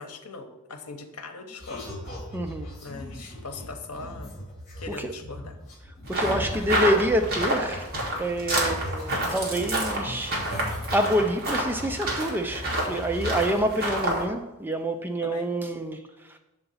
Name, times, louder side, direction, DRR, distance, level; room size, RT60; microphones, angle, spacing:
voice 1, 0.0-1.9 2.8-4.3 4.8-5.6 6.2-6.8 15.2-15.5, left 3 dB, 75° left, 5 dB, 0.9 m, -40 dB
sound 1, 1.6-8.0 8.3-12.2 12.5-13.4, left 1 dB, 35° left, 2.1 m, -38 dB
voice 2, 2.3-2.7 4.9-5.1 6.1-7.9 8.2-16.4, right 1 dB, 10° right, 5 dB, 0.3 m, -27 dB
sound 2, 6.1-14.2, right 1 dB, 45° right, 1.7 m, -29 dB
6.9 x 3.8 x 5.5 m, 1.0 s
head